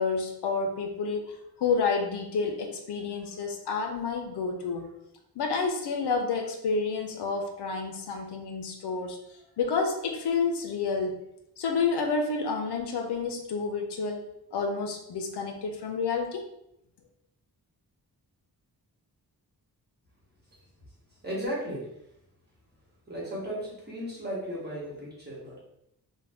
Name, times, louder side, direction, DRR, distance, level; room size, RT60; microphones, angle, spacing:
voice 1, 0.0-4.9 5.4-9.2 9.6-11.2 11.6-16.4, left 4 dB, 80° left, 3 dB, 0.6 m, -29 dB
voice 2, 21.2-21.9 23.1-25.6, equal, 25° right, -6 dB, 1.0 m, -35 dB
2.5 x 2.2 x 3.3 m, 0.79 s
wide cardioid pair, 150°, 40 cm